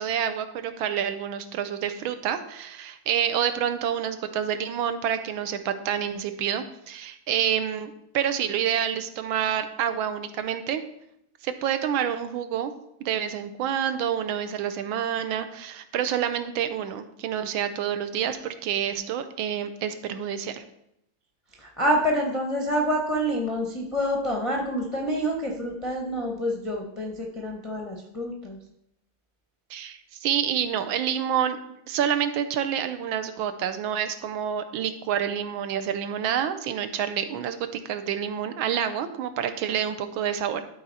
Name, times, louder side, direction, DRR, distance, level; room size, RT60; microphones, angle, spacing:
voice 1, 0.0-10.8 11.4-12.7 13.0-20.6 29.7-31.6 31.9-40.6, right 9 dB, 80° right, 10 dB, 1.4 m, -28 dB
voice 2, 21.6-28.6, equal, 40° left, -2 dB, 0.4 m, -27 dB
12.0 x 4.3 x 4.1 m, 0.79 s
omnidirectional pair, 2.2 m